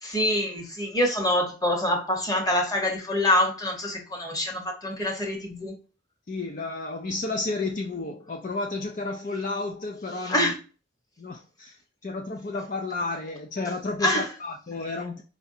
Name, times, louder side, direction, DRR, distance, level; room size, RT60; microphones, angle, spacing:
voice 1, 0.0-5.7 10.3-10.5 14.0-14.3, left 1 dB, 20° left, 1.1 m, -25 dB
voice 2, 6.3-10.5 11.2-15.2, left 3 dB, 40° left, 0.5 m, -32 dB
4.8 x 3.4 x 2.7 m
head